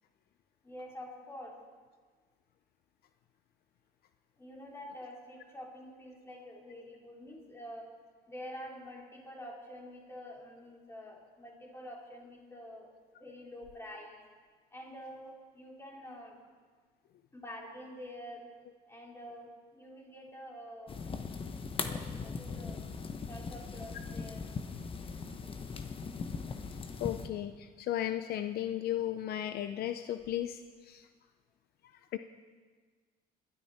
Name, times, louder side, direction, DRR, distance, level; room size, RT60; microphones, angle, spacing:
voice 1, 0.6-1.6 4.4-7.9 8.3-14.2 14.7-16.4 17.3-18.5 18.9-21.0 21.8-22.8 23.3-24.5, equal, 15° left, -2 dB, 4.0 m, -47 dB
sound 1, 20.9-27.3, left 5 dB, 30° left, 1.1 m, -39 dB
voice 2, 27.0-31.1 32.1-32.2, left 12 dB, 65° left, 9 dB, 0.6 m, -35 dB
21.5 x 12.5 x 4.3 m, 1.5 s
cardioid pair, 110°, 17 cm